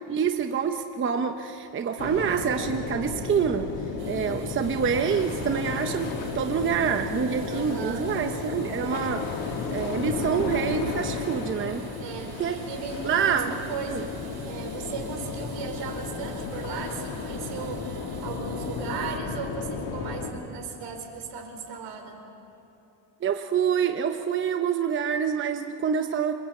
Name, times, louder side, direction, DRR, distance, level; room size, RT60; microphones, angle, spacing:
voice 1, 0.1-3.7 4.0-11.9 12.4-12.6 13.0-13.6 13.9-14.1 23.2-26.3, right 7 dB, 30° right, 6 dB, 0.9 m, -27 dB
sound 1, 2.0-20.3, left 5 dB, 85° left, 3.0 m, -33 dB
sound 2, 4.0-19.2, right 7 dB, 55° right, 2.2 m, -46 dB
voice 2, 7.5-8.1 12.0-14.2 14.4-22.2, right 5 dB, 70° right, 4 dB, 4.4 m, -37 dB
27.0 x 23.5 x 8.4 m, 2.9 s
cardioid pair, 160°, 44 cm